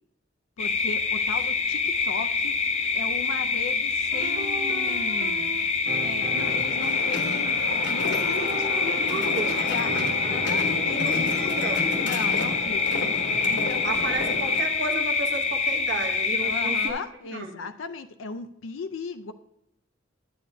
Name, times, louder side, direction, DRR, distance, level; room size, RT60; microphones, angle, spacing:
voice 1, 0.6-5.5 6.0-9.9 10.3-11.5 12.0-13.0 13.3-14.2 16.4-19.3, left 4 dB, 80° left, 10 dB, 0.4 m, -37 dB
sound 1, 0.6-16.9, left 4 dB, 35° left, 0.6 m, -26 dB
sound 2, 4.1-6.8 8.1-10.8, right 4 dB, 45° right, 0.5 m, -37 dB
sound 3, 6.4-14.6, left 2 dB, 65° left, 1.1 m, -32 dB
voice 2, 9.0-9.5 10.8-11.9 13.8-17.0 17.3-17.6, right 3 dB, 65° right, 3 dB, 1.0 m, -33 dB
9.3 x 8.6 x 2.6 m, 0.83 s
head